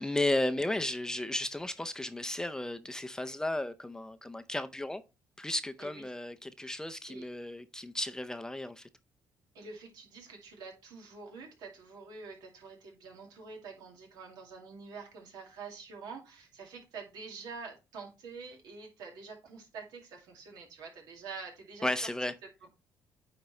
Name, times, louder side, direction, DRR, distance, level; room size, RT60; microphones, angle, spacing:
voice 1, 0.0-5.0 5.4-8.9 21.8-22.3, left 1 dB, 10° left, 0.5 m, -34 dB
voice 2, 9.5-21.9 22.4-22.7, right 4 dB, 80° right, 2.3 m, -47 dB
9.3 x 4.0 x 3.2 m
cardioid pair, 100°, 7 cm